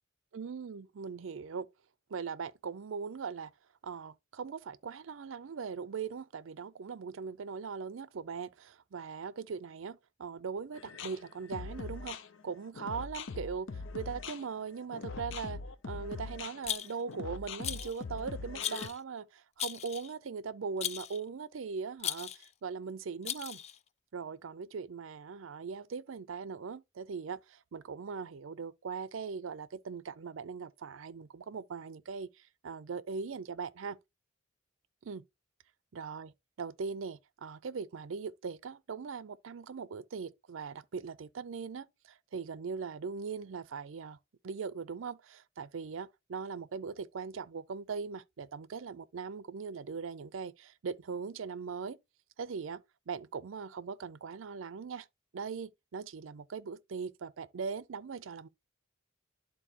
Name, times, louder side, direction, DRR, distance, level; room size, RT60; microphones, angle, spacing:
voice 1, 0.3-1.7 2.1-3.5 3.8-23.6 24.1-34.0 35.0-35.2 35.9-44.2 44.4-52.0 52.4-55.1 55.3-58.5, right 5 dB, 80° right, 0.5 m, -40 dB
sound 1, 10.7-18.9, left 4 dB, 75° left, 0.6 m, -42 dB
Rattle, 16.6-17.1 17.6-18.0 18.6-19.0 19.6-20.1 20.8-21.2 22.0-22.5 23.2-23.8, left 10 dB, 35° left, 0.3 m, -37 dB
11.5 x 3.9 x 2.9 m
head